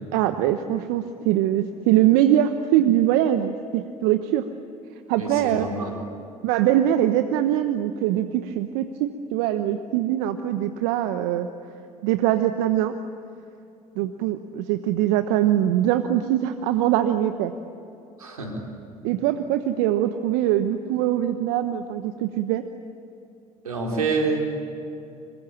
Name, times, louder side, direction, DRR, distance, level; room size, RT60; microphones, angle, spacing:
voice 1, 0.1-4.4 5.1-5.7 6.4-11.5 12.0-12.9 13.9-17.5 19.0-22.6, right 12 dB, 70° right, 9 dB, 1.1 m, -22 dB
voice 2, 5.2-5.9 18.2-18.6 23.6-24.6, right 3 dB, 90° right, 0 dB, 4.0 m, -27 dB
26.5 x 23.0 x 8.8 m, 2.8 s
hypercardioid pair, 60°, 18 cm